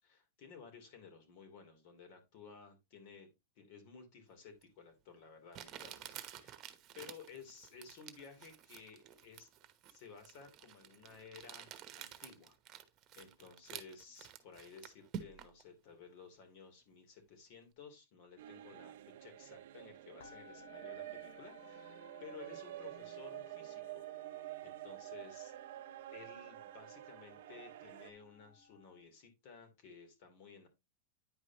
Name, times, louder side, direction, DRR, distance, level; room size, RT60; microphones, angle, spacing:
voice 1, 0.0-6.7 6.9-9.5 9.9-11.7 12.0-12.6 13.1-24.1 24.6-25.5 26.1-30.7, left 5 dB, 55° left, 5 dB, 3.4 m, -55 dB
Crumpling crinkling, 4.6-4.7 5.5-15.6, right 10 dB, 35° right, 1.1 m, -51 dB
sound 1, 18.3-18.5 18.7-19.8 20.2-29.0, left 4 dB, 80° left, 2.3 m, -61 dB
sound 2, 18.4-28.1, right 15 dB, 70° right, 0.6 m, -49 dB
9.8 x 5.0 x 3.0 m, 0.22 s
hypercardioid pair, 130°, 0 cm